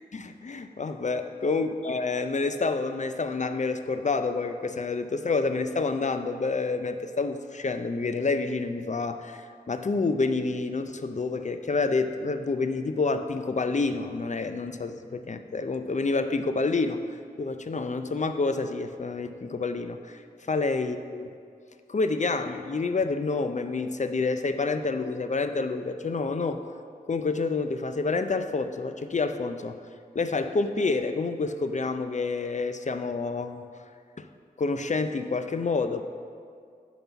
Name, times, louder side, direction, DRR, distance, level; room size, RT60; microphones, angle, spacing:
voice 1, 0.1-17.0 17.4-21.3 21.9-26.6 27.1-29.8 30.1-33.6 34.2-34.3 34.6-36.0, left 3 dB, 50° left, 8 dB, 0.4 m, -28 dB
6.8 x 4.2 x 5.7 m, 2.2 s
wide cardioid pair, 45°, 16 cm